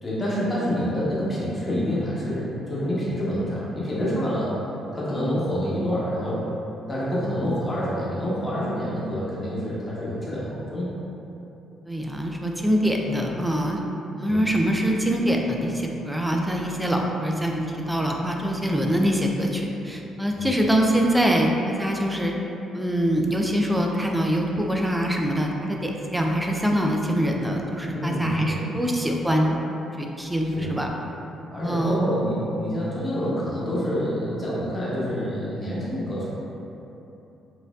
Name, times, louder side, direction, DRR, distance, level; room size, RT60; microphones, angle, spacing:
voice 1, 0.0-4.6 4.9-6.5 6.9-10.9 14.2-14.4 20.4-20.5 27.9-28.6 30.5-30.7 31.5-36.3, equal, 25° left, -8 dB, 1.1 m, -27 dB
voice 2, 11.9-13.8 14.2-22.3 22.7-29.6 30.0-30.9 31.6-32.0, equal, 5° right, 0 dB, 0.4 m, -24 dB
4.2 x 2.6 x 2.4 m, 3.0 s
cardioid pair, 85°, 0 cm